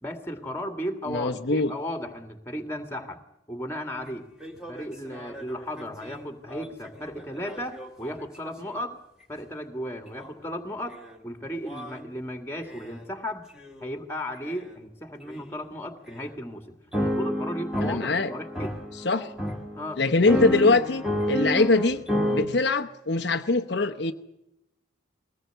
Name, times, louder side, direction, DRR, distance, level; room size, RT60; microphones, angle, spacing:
voice 1, 0.0-3.2 3.5-4.3 4.7-8.9 9.3-11.0 11.2-13.5 13.8-18.8 19.7-20.0, equal, 10° left, 2.2 m, -35 dB
voice 2, 1.1-1.7 17.8-18.3 19.0-19.3 20.0-22.0 22.3-24.1, left 3 dB, 60° left, 0.9 m, -23 dB
sound 1, 4.0-4.1 4.4-8.8 10.1-10.3 10.9-11.2 11.6-12.1 12.7-13.0 13.6-13.9 14.5-14.6 15.3-15.4 16.1-16.2 16.9-22.5, equal, 5° right, 2.4 m, -31 dB
21.5 x 18.0 x 8.0 m
head